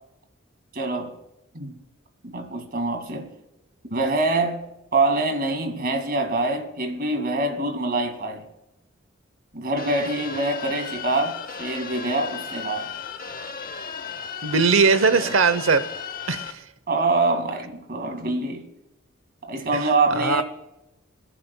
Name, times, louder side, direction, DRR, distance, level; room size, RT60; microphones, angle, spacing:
voice 1, 0.7-1.1 1.5-1.8 2.2-3.3 3.9-4.7 4.9-8.5 9.5-12.9 15.2-15.3 16.9-18.6 19.4-20.4, right 2 dB, 50° right, 2.2 m, -25 dB
sound 1, 9.8-16.5, left 6 dB, 45° left, 0.8 m, -35 dB
voice 2, 14.4-15.9 16.3-16.6 19.7-19.8 20.1-20.4, right 4 dB, 75° right, 0.9 m, -20 dB
26.5 x 11.0 x 2.3 m
head